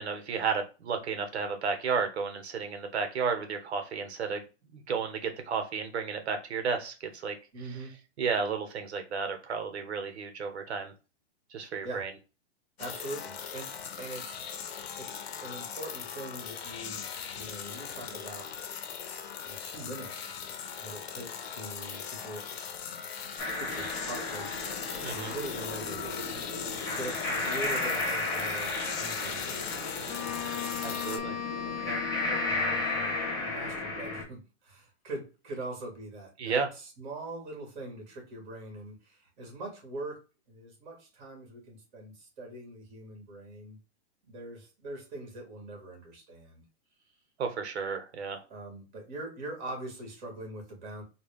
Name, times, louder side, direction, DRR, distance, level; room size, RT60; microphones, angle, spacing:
voice 1, 0.0-4.4 4.7-7.4 8.2-10.9 11.5-12.1 25.0-25.3 30.8-31.4 36.4-36.7 47.4-48.4, right 5 dB, 70° right, 7 dB, 1.2 m, -32 dB
voice 2, 7.5-8.0 11.8-12.1 12.8-14.4 15.0-17.0 17.3-18.5 19.5-20.4 20.8-22.5 23.4-24.5 25.1-26.2 26.9-29.6 30.2-30.5 31.8-43.8 44.2-46.6 48.5-51.0, right 1 dB, 40° right, 1 dB, 2.3 m, -42 dB
sound 1, 12.8-31.2, left 7 dB, 60° left, 0.8 m, -39 dB
sound 2, 23.4-34.2, left 2 dB, 10° left, 1.2 m, -34 dB
Wind instrument woodwind instrument, 30.1-33.6, left 9 dB, 30° left, 1.0 m, -37 dB
4.2 x 2.4 x 3.5 m, 0.30 s
hypercardioid pair, 165°, 34 cm